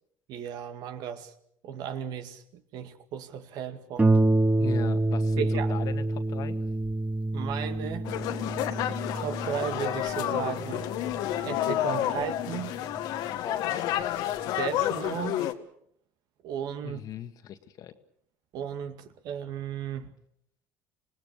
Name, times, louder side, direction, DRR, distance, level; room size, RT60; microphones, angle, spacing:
voice 1, 0.3-1.3 1.6-4.1 5.4-5.7 7.3-8.1 9.1-11.0 11.4-12.8 14.6-15.5 16.4-17.0 18.5-20.2, right 8 dB, 65° right, 2.1 m, -35 dB
Harp, 4.0-13.2 14.0-14.1 14.6-14.7, right 2 dB, 20° right, 1.3 m, -28 dB
voice 2, 4.6-6.6 13.4-14.1 16.8-17.9, left 9 dB, 55° left, 1.9 m, -38 dB
sound 1, 8.0-15.5, left 12 dB, 70° left, 1.7 m, -30 dB
26.0 x 19.0 x 6.7 m
supercardioid pair, 95°, 7 cm